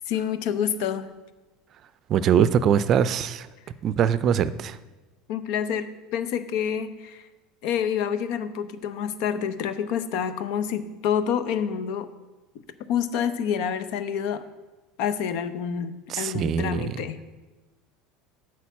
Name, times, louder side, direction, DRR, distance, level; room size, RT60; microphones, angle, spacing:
voice 1, 0.1-1.1 5.3-7.2 7.6-12.1 12.9-14.4 15.0-17.2, left 8 dB, 65° left, 12 dB, 0.7 m, -28 dB
voice 2, 2.1-3.5 3.8-4.8 16.1-17.0, right 8 dB, 45° right, 15 dB, 0.4 m, -22 dB
8.3 x 4.6 x 7.1 m, 1.2 s
hypercardioid pair, 90°, 0 cm